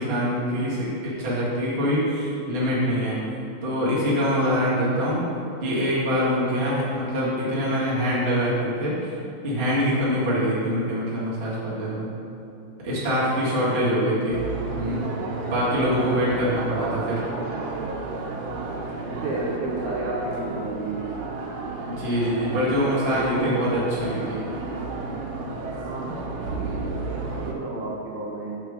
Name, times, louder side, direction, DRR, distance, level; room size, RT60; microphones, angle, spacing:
voice 1, 0.0-3.2 3.6-5.2 5.6-9.1 9.4-12.1 12.8-14.4 14.7-15.0 15.5-17.2 21.9-24.4, equal, 35° right, -8 dB, 1.0 m, -24 dB
voice 2, 13.7-14.2 16.7-17.0 19.0-21.1 23.0-23.6 25.8-26.7 27.2-28.6, right 2 dB, 70° right, -5 dB, 2.2 m, -32 dB
sound 1, 14.3-27.5, right 3 dB, 85° right, 2.6 m, -32 dB
6.3 x 5.1 x 4.9 m, 2.8 s
omnidirectional pair, 4.0 m